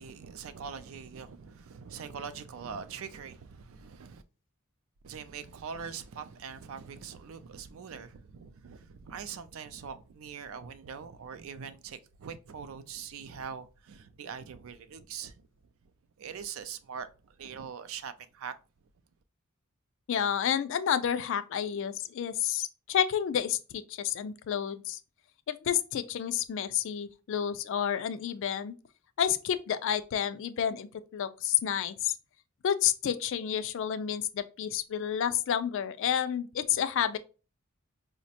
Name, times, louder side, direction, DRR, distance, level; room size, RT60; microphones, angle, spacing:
voice 1, 0.0-4.2 5.0-15.5 16.2-18.5, right 6 dB, 65° right, 0.4 m, -42 dB
voice 2, 20.1-25.0 25.5-28.7 29.2-32.1 32.6-37.2, left 9 dB, 60° left, 0.3 m, -30 dB
4.8 x 2.1 x 2.7 m
head